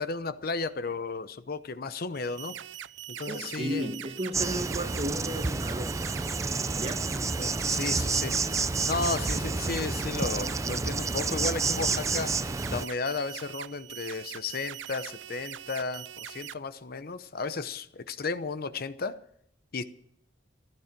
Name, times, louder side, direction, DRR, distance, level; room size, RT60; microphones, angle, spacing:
voice 1, 0.0-2.6 3.1-3.9 7.4-8.4 8.9-12.3 12.7-19.2 19.7-19.8, left 4 dB, 55° left, 0.7 m, -34 dB
sound 1, 2.1-16.5, right 11 dB, 80° right, 0.5 m, -42 dB
voice 2, 3.3-5.9 6.8-7.1, right 1 dB, 35° right, 1.5 m, -34 dB
Insect, 4.3-12.9, right 4 dB, 15° right, 0.4 m, -29 dB
15.0 x 12.0 x 6.0 m
head